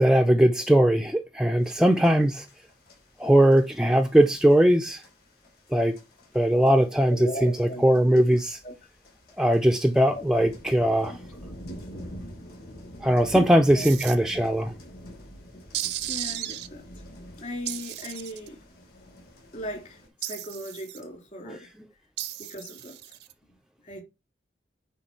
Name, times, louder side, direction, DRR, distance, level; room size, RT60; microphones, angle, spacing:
voice 1, 0.0-2.5 3.2-5.0 5.7-6.0 6.3-8.6 9.4-11.1 13.0-14.7 21.5-21.6, right 1 dB, 5° right, 0.5 m, -20 dB
sound 1, 1.6-20.1, equal, 55° left, 3.9 m, -47 dB
voice 2, 7.1-7.8 8.1-8.2 8.6-8.7 10.1-10.2 10.7-11.2 13.3-13.9 15.7-16.8 17.2-18.6 19.5-21.7 22.4-23.2 23.8-24.0, equal, 40° left, 2.9 m, -38 dB
sound 2, 13.8-14.2 15.7-16.7 17.7-18.5 20.2-21.0 22.2-23.3, right 13 dB, 60° right, 0.6 m, -34 dB
9.6 x 4.3 x 4.5 m
head